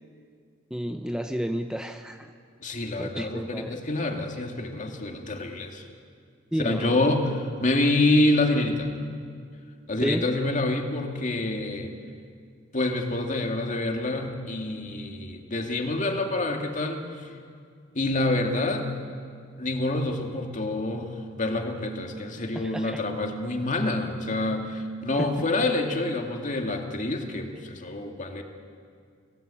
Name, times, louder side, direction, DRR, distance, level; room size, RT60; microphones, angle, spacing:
voice 1, 0.7-2.3 3.0-3.8 6.5-7.0 10.0-10.3 22.5-23.0 25.2-25.3, equal, 5° right, 6 dB, 0.7 m, -31 dB
voice 2, 2.6-5.9 6.6-8.9 9.9-11.9 12.7-17.3 17.9-18.9 19.6-28.4, left 2 dB, 40° left, 3 dB, 2.3 m, -27 dB
26.5 x 16.5 x 8.5 m, 2.2 s
head